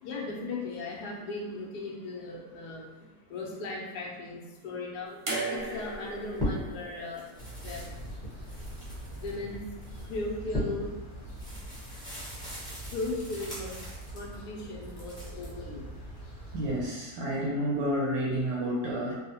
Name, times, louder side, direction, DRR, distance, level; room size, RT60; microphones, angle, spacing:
voice 1, 0.0-2.8 3.3-5.2 5.5-7.2 7.6-7.8 9.2-9.7 10.1-10.9 12.9-13.8 14.1-15.8, left 2 dB, 80° left, 0 dB, 1.1 m, -37 dB
sound 1, 5.3-8.4 9.6-9.7, right 3 dB, 50° right, 0.8 m, -37 dB
sound 2, 5.5-6.9 7.1-14.4 14.8-15.5, equal, 5° left, 0.7 m, -39 dB
sound 3, 7.4-16.9, right 1 dB, 50° left, 0.7 m, -44 dB
voice 2, 16.5-19.2, equal, 75° right, -5 dB, 1.1 m, -30 dB
3.6 x 2.0 x 2.7 m, 1.1 s
omnidirectional pair, 1.8 m